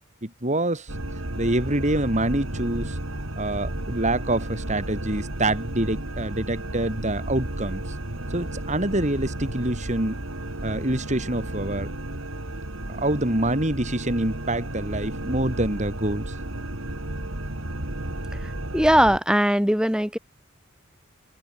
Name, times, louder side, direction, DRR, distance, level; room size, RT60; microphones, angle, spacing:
voice 1, 0.2-0.9 1.4-3.0 3.4-7.8 8.3-10.2 10.6-11.9 12.9-16.3, right 1 dB, 35° right, 4.5 m, -26 dB
sound 1, 0.9-19.2, right 1 dB, 80° right, 3.4 m, -33 dB
voice 2, 18.7-20.2, equal, 5° right, 3.9 m, -19 dB
head